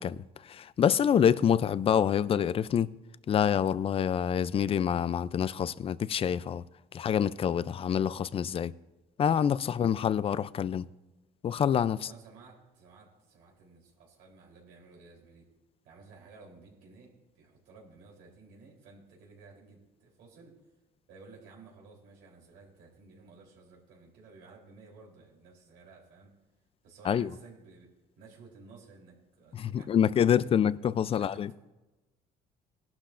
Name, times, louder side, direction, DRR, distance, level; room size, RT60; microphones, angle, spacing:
voice 1, 0.0-2.9 3.3-6.6 6.9-8.7 9.2-10.9 11.4-12.1 27.1-27.3 29.5-31.5, left 8 dB, 35° left, 0.4 m, -26 dB
voice 2, 11.9-15.5 15.8-20.6 21.1-26.3 26.8-29.9 30.2-30.6 31.1-31.5, right 4 dB, 90° right, 3.6 m, -54 dB
18.0 x 12.0 x 2.5 m
cardioid pair, 110°, 17 cm